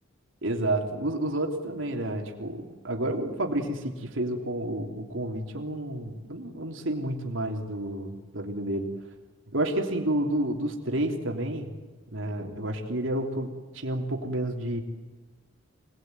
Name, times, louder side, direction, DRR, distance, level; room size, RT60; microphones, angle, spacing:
voice 1, 0.4-8.9 9.5-11.7 12.1-14.8, right 1 dB, 90° right, 2 dB, 3.3 m, -30 dB
27.0 x 19.5 x 9.4 m, 1.3 s
head